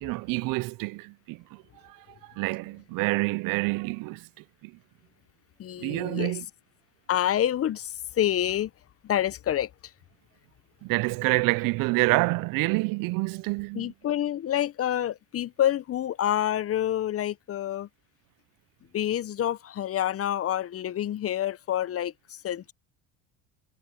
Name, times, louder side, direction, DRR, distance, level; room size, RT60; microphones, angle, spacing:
voice 1, 0.0-2.0 2.2-4.3 4.6-4.7 5.8-6.5 10.8-13.9, right 24 dB, 60° right, 0.7 m, -27 dB
voice 2, 5.6-6.4 7.1-8.7 9.0-9.7 13.7-17.9 18.9-22.7, left 11 dB, 40° left, 0.8 m, -27 dB
hypercardioid pair, 80°, 38 cm